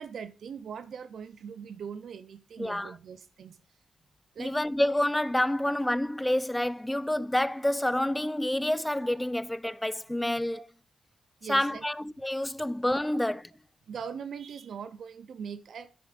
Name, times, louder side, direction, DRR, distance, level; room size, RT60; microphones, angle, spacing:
voice 1, 0.0-3.6 4.3-4.6 10.5-10.6 11.4-11.8 13.9-15.9, right 7 dB, 70° right, 0.5 m, -41 dB
voice 2, 2.6-2.9 4.4-10.6 11.5-13.5, left 1 dB, 10° left, 0.4 m, -28 dB
9.4 x 8.5 x 2.4 m
supercardioid pair, 45°, 0 cm